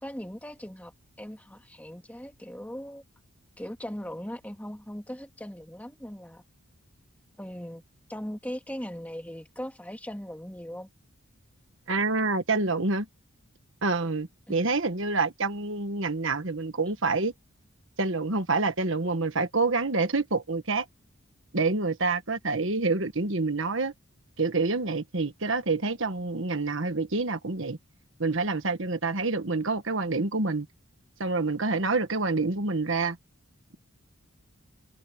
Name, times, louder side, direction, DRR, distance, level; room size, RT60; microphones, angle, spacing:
voice 1, 0.0-0.9 1.2-3.0 3.6-6.4 7.4-7.8 8.1-10.9 14.5-14.7, equal, 5° left, 2.1 m, -39 dB
voice 2, 11.9-13.1 13.8-17.3 18.0-20.8 21.5-23.9 24.4-27.8 28.2-30.7 31.2-33.2, right 3 dB, 60° right, 1.6 m, -27 dB
head